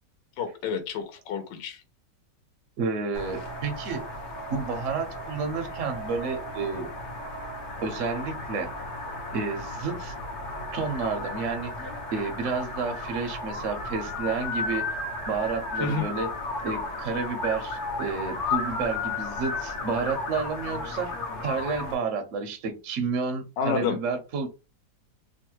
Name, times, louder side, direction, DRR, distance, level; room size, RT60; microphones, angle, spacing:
voice 1, 0.4-1.8 15.8-16.1 23.6-24.0, left 5 dB, 80° left, 5 dB, 1.3 m, -29 dB
voice 2, 2.8-4.0 4.5-6.9 7.8-8.7 9.3-10.1 10.7-11.7 12.1-14.9 15.3-16.3 16.6-21.1 21.4-24.5, right 4 dB, 70° right, 5 dB, 0.7 m, -30 dB
sound 1, 3.1-21.9, left 2 dB, 55° left, 0.8 m, -34 dB
3.1 x 2.2 x 3.0 m, 0.29 s
omnidirectional pair, 2.0 m